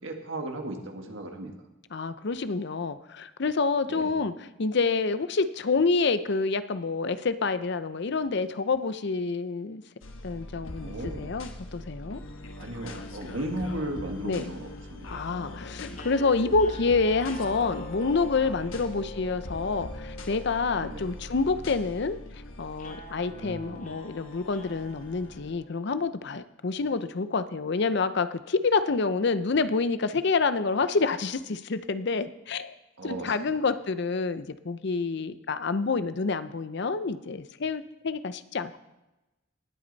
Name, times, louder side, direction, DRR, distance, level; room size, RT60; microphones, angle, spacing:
voice 1, 0.0-1.5 3.9-4.1 10.8-11.3 12.6-15.3 18.7-18.9 20.8-21.2 23.3-23.9 33.0-33.6, right 1 dB, 75° right, 4 dB, 1.7 m, -36 dB
voice 2, 1.9-9.8 10.2-12.2 14.2-14.5 15.1-22.2 22.6-32.7 33.0-38.8, left 4 dB, 60° left, 12 dB, 0.6 m, -28 dB
sound 1, 10.0-25.5, left 1 dB, 90° left, 1.2 m, -42 dB
sound 2, 15.9-26.1, left 2 dB, 40° left, 1.5 m, -45 dB
19.0 x 8.6 x 4.0 m, 0.98 s
head